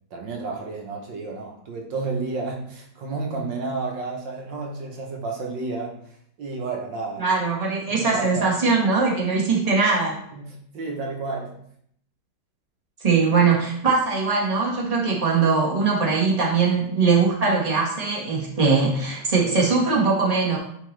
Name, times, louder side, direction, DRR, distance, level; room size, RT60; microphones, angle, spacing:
voice 1, 0.1-6.0 6.4-7.3 8.0-8.5 10.3-11.6, right 3 dB, 75° right, 1 dB, 1.7 m, -31 dB
voice 2, 7.2-10.2 13.0-20.6, right 4 dB, 20° right, -4 dB, 1.5 m, -21 dB
9.0 x 4.2 x 3.2 m, 0.67 s
omnidirectional pair, 2.0 m